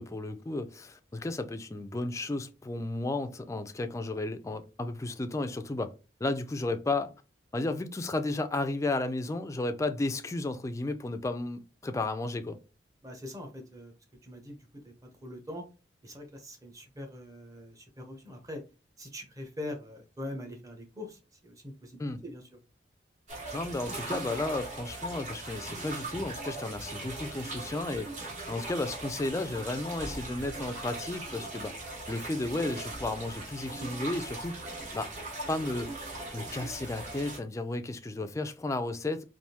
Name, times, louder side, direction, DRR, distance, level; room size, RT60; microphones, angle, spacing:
voice 1, 0.0-5.9 6.2-7.1 7.5-12.6 22.0-22.2 23.5-28.1 28.5-31.7 32.1-35.1 35.5-35.9 36.3-39.2, left 2 dB, 15° left, 0.3 m, -33 dB
voice 2, 13.0-13.9 14.2-15.6 16.0-18.6 19.0-22.5, left 1 dB, 20° right, 0.8 m, -43 dB
sound 1, 23.3-37.4, right 2 dB, 45° right, 0.9 m, -39 dB
3.4 x 2.5 x 2.8 m
head